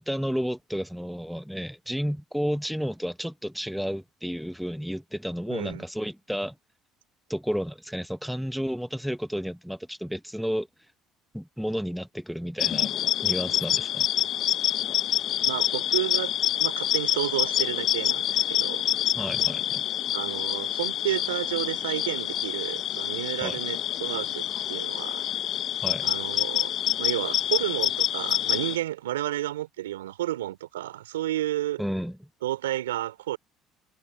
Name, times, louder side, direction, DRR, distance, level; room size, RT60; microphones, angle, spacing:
voice 1, 0.0-6.5 7.3-10.7 11.3-12.9 13.2-14.1 19.2-19.8 23.4-23.6 25.8-26.1 31.8-32.2, equal, ahead, 1.2 m, -32 dB
voice 2, 5.5-5.8 15.4-16.3 16.6-18.9 20.1-25.2 26.0-31.8 32.4-33.4, right 14 dB, 85° right, 3.0 m, -31 dB
sound 1, 12.6-28.8, left 11 dB, 55° left, 0.9 m, -27 dB
hypercardioid pair, 65°, 0 cm